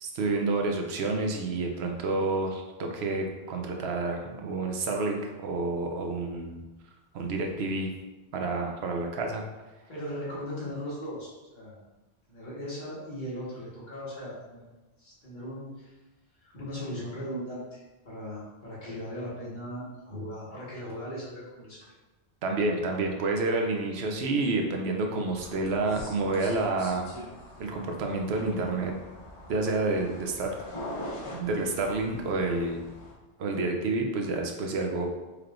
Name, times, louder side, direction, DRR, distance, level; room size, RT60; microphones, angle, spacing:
voice 1, 0.0-6.6 7.1-7.9 8.3-9.4 22.4-27.1 27.6-28.9 29.5-30.5 31.3-32.8 33.4-35.1, right 3 dB, 70° right, 2 dB, 0.8 m, -29 dB
voice 2, 9.9-11.8 12.3-14.6 15.0-15.9 16.4-21.9, equal, 45° left, -9 dB, 1.6 m, -38 dB
sound 1, 25.3-33.1, left 1 dB, 85° left, 1.3 m, -43 dB
4.4 x 3.4 x 2.5 m, 1.1 s
omnidirectional pair, 1.1 m